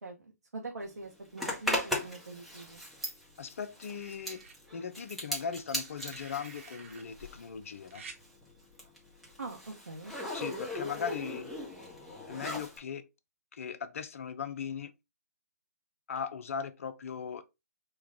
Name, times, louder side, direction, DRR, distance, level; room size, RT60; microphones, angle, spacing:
voice 1, 0.0-2.8 9.4-10.1, right 3 dB, 80° right, 0.9 m, -43 dB
Zipper (clothing), 1.4-7.6 7.8-12.8, left 1 dB, ahead, 0.9 m, -38 dB
sound 1, 2.6-3.3 3.9-4.6 5.7-7.0 7.9-8.2 9.6-9.8, right 4 dB, 45° right, 1.0 m, -51 dB
voice 2, 3.4-4.4 4.7-8.0 10.3-11.5 12.3-13.0 13.5-14.9 16.1-17.4, left 7 dB, 50° left, 0.6 m, -38 dB
4.5 x 2.3 x 3.5 m
figure-of-eight pair, 140°, 9 cm